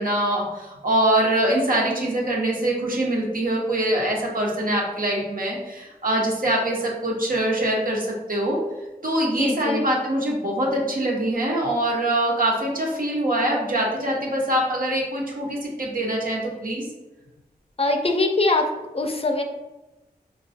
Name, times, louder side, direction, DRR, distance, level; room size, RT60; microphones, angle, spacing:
voice 1, 0.0-8.6 9.0-16.8, right 1 dB, 60° right, -2 dB, 1.0 m, -24 dB
voice 2, 9.4-9.9 17.8-18.7 18.9-19.4, left 2 dB, 35° left, 4 dB, 0.5 m, -22 dB
4.1 x 2.2 x 2.7 m, 1.1 s
cardioid pair, 50°, 16 cm